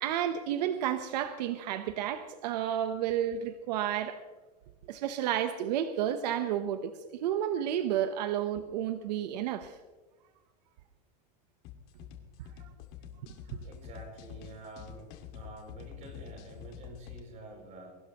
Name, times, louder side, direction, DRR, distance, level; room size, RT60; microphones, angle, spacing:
voice 1, 0.0-4.2 4.9-9.8 12.6-12.7 13.5-13.6, right 10 dB, 80° right, 9 dB, 1.0 m, -31 dB
sound 1, 11.6-17.2, left 9 dB, 50° left, 2.0 m, -47 dB
voice 2, 13.6-15.1 15.3-18.0, right 2 dB, 35° right, 1 dB, 6.4 m, -48 dB
23.0 x 17.5 x 3.0 m, 1.3 s
supercardioid pair, 155°, 21 cm